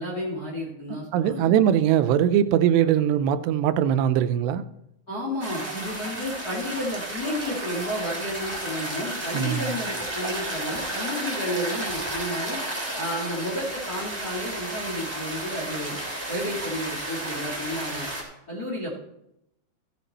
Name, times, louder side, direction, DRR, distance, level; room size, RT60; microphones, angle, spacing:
voice 1, 0.0-1.5 2.5-2.6 5.1-12.6 13.0-16.0 16.3-18.1 18.5-19.0, equal, 35° left, 1.6 m, -32 dB
voice 2, 0.9-4.6 9.3-9.8, right 10 dB, 85° right, 2.8 m, -21 dB
sound 1, 5.4-18.2, right 1 dB, 5° right, 2.0 m, -32 dB
15.0 x 7.6 x 4.1 m
omnidirectional pair, 4.8 m